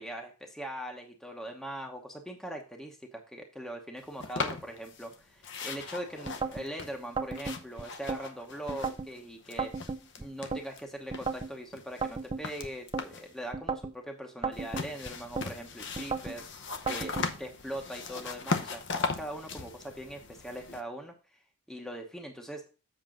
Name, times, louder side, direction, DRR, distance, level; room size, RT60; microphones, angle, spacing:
voice 1, 0.0-9.7 10.2-16.4 16.9-21.1 21.7-22.6, right 1 dB, ahead, 1 dB, 1.0 m, -41 dB
sound 1, 4.2-5.2 5.4-9.2 9.4-10.8 11.1-13.3 14.5-20.8, left 4 dB, 50° left, 0.8 m, -38 dB
sound 2, 6.3-6.7 7.2-8.2 8.7-9.1 9.6-10.6 11.1-11.5 12.0-13.1 13.5-14.0 14.4-15.5 16.0-16.4 16.9-17.3, right 4 dB, 20° right, 0.5 m, -34 dB
7.6 x 6.0 x 3.8 m, 0.34 s
head